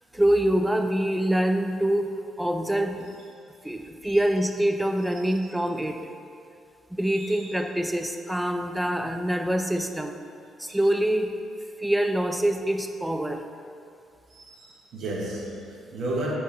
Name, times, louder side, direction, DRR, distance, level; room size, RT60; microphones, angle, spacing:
voice 1, 0.1-3.1 3.6-6.1 6.9-10.1 10.6-11.3 11.8-13.4, right 1 dB, 5° right, 6 dB, 0.4 m, -25 dB
voice 2, 7.2-7.5 10.7-10.8 14.3-16.4, right 1 dB, 75° right, -4 dB, 1.4 m, -33 dB
7.7 x 3.0 x 5.2 m, 2.4 s
cardioid pair, 90°, 0 cm